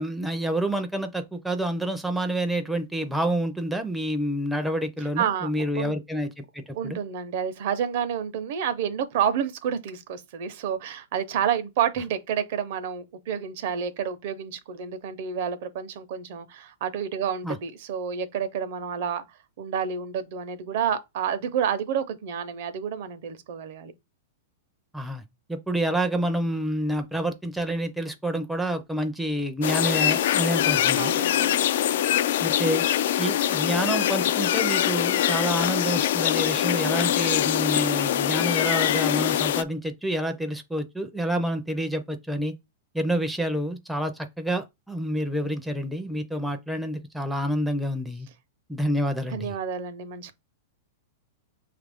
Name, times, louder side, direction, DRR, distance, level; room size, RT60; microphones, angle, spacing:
voice 1, 0.0-7.0 17.4-17.6 24.9-25.2 25.5-31.2 32.4-32.8 33.2-42.5 42.9-48.3 48.7-49.5, right 1 dB, ahead, 0.5 m, -28 dB
voice 2, 5.2-5.5 5.8-5.9 6.7-19.2 19.6-23.9 31.0-31.5 49.3-50.3, right 8 dB, 60° right, 0.7 m, -29 dB
sound 1, 29.6-39.6, left 11 dB, 65° left, 0.3 m, -23 dB
5.7 x 2.4 x 3.4 m
hypercardioid pair, 140°, 0 cm